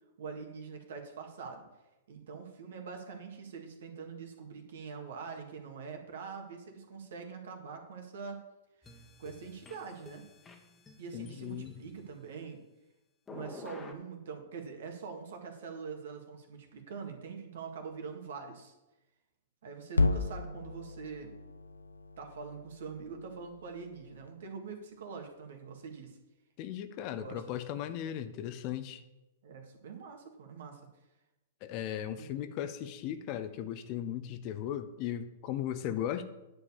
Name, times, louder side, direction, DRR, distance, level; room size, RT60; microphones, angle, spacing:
voice 1, 0.2-1.6 2.1-8.4 8.8-8.9 9.2-10.2 11.0-12.6 13.3-18.7 19.6-21.3 22.2-26.2 27.2-27.4 29.4-30.9, right 5 dB, 65° right, 1.9 m, -44 dB
sound 1, 8.8-12.2 13.3-13.9, left 3 dB, 15° left, 1.5 m, -50 dB
voice 2, 11.1-11.8 26.6-29.0 31.6-36.2, left 10 dB, 40° left, 0.8 m, -37 dB
sound 2, 19.9-24.3, left 3 dB, 85° left, 0.6 m, -34 dB
10.0 x 4.9 x 7.2 m
figure-of-eight pair, 105°, 0 cm